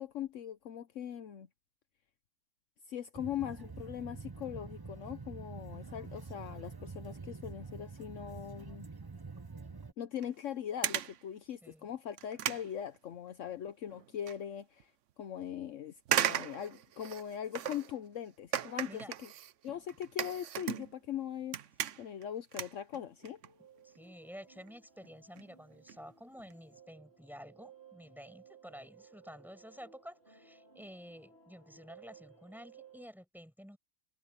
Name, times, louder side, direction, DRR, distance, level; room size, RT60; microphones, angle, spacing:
voice 1, 0.0-1.5 2.9-8.9 10.0-14.9 15.2-19.3 19.6-21.6 22.0-23.4, left 10 dB, 65° left, 1.1 m, -41 dB
sound 1, 3.1-9.9, right 4 dB, 20° right, 0.6 m, -46 dB
sound 2, 10.2-10.4 10.8-11.2 11.7-11.8 12.2-13.5 13.9-14.4 14.8-14.9 16.0-18.0 18.5-21.2 21.4-22.2 22.5-23.5 23.8-24.0 24.7-24.8 25.0-25.1 25.4-25.5 25.7-26.0 26.4-26.5 26.8-26.9, right 10 dB, 65° right, 1.0 m, -36 dB
voice 2, 11.6-11.9 18.8-19.1 23.8-33.8, equal, ahead, 7.9 m, -51 dB
sound 3, 23.0-33.1, right 6 dB, 45° right, 4.8 m, -60 dB
omnidirectional pair, 1.4 m